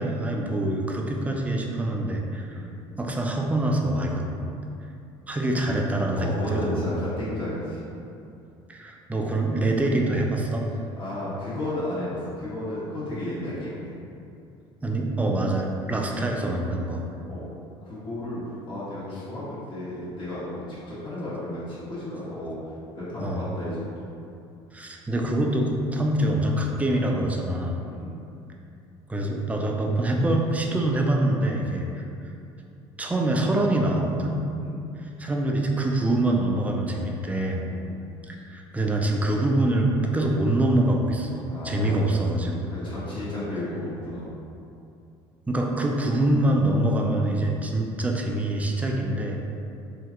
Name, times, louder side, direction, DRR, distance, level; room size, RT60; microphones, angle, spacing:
voice 1, 0.0-2.6 3.0-4.2 5.3-7.0 8.7-10.7 14.8-17.0 23.2-23.4 24.7-27.8 29.1-32.0 33.0-34.4 35.0-37.6 38.3-42.7 45.5-49.4, right 1 dB, 10° right, 0 dB, 0.4 m, -25 dB
voice 2, 6.1-7.8 11.0-13.9 17.3-17.4 17.8-22.5 22.9-24.0 27.8-28.1 34.6-34.8 37.7-38.0 41.5-42.3 42.7-44.3, left 1 dB, 40° left, -10 dB, 1.5 m, -33 dB
3.0 x 2.4 x 2.8 m, 2.6 s
supercardioid pair, 90°, 12 cm